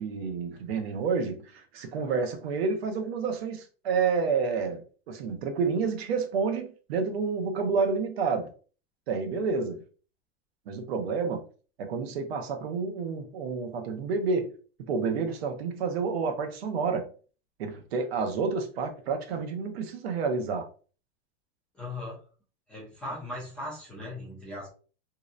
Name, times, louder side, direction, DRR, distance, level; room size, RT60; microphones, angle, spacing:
voice 1, 0.0-8.5 9.1-9.8 10.7-11.4 11.8-14.5 14.9-17.1 17.6-20.7, right 5 dB, 85° right, 0.7 m, -29 dB
voice 2, 21.7-22.2 22.7-24.7, left 1 dB, 5° left, 0.3 m, -38 dB
2.8 x 2.0 x 2.4 m
supercardioid pair, 175°, 30 cm